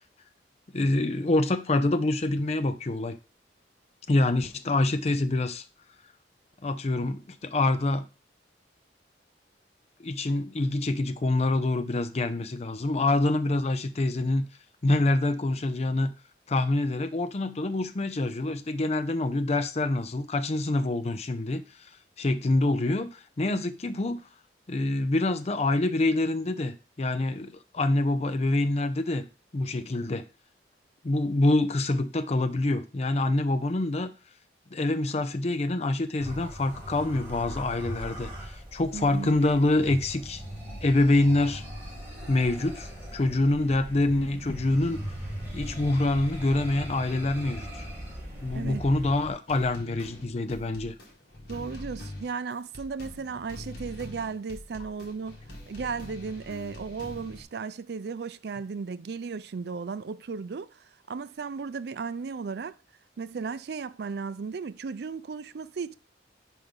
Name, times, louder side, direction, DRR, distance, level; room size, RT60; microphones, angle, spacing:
voice 1, 0.7-3.2 4.1-5.6 6.6-8.0 10.0-14.5 14.8-16.1 16.5-21.6 22.2-24.2 24.7-29.2 29.5-30.3 31.0-34.1 34.7-40.4 40.8-41.6 42.3-45.0 45.5-47.9 48.4-50.9, left 2 dB, 35° left, 0.5 m, -26 dB
sound 1, 36.2-49.3, equal, 10° right, 2.7 m, -39 dB
voice 2, 38.9-39.3 48.5-48.8 51.5-55.4 55.7-60.8 61.1-62.8 63.2-65.9, right 5 dB, 60° right, 0.4 m, -35 dB
sound 2, 49.5-57.4, left 1 dB, 60° left, 1.9 m, -43 dB
5.2 x 4.6 x 5.3 m
head